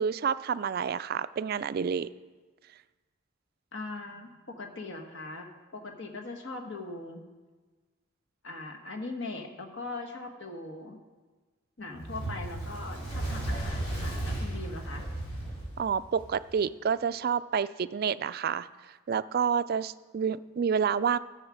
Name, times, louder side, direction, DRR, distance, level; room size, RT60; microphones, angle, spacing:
voice 1, 0.0-2.1 15.8-18.7 19.1-21.2, right 7 dB, 45° right, 14 dB, 0.3 m, -29 dB
voice 2, 3.7-7.2 8.4-11.0 11.8-15.1, left 2 dB, 60° left, 3 dB, 1.3 m, -40 dB
Fire, 11.9-16.5, right 1 dB, 90° left, 4.4 m, -35 dB
13.0 x 7.2 x 6.3 m, 1.3 s
head